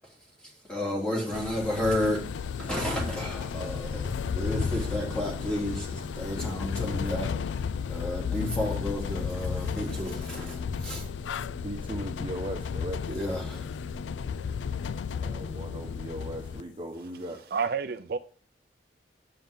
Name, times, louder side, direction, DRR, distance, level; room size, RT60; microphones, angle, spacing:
voice 1, 0.4-2.2 2.6-11.1 13.1-13.7, left 1 dB, 5° left, 3.2 m, -32 dB
sound 1, 1.3-16.6, left 6 dB, 85° left, 0.4 m, -33 dB
voice 2, 11.6-13.0 15.2-17.5, equal, 30° right, 1.1 m, -38 dB
voice 3, 17.5-18.2, right 5 dB, 55° right, 0.5 m, -29 dB
9.0 x 7.7 x 3.6 m
head